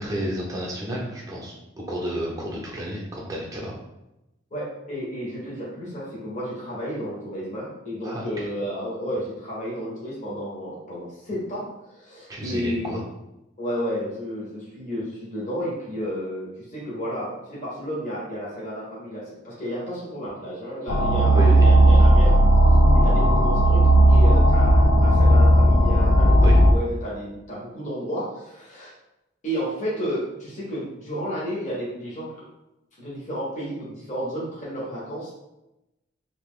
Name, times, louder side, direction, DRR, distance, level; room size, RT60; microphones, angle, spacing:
voice 1, 0.0-3.7 8.0-8.5 12.3-13.0 21.3-21.8 26.4-26.6, equal, 15° right, -4 dB, 0.8 m, -31 dB
voice 2, 4.5-13.0 13.6-22.4 22.9-26.4 26.7-28.9 29.4-32.4 33.0-35.3, equal, 40° left, -7 dB, 1.3 m, -32 dB
sound 1, 20.9-26.7, right 1 dB, 90° left, 0.4 m, -15 dB
2.9 x 2.7 x 3.6 m, 0.91 s
head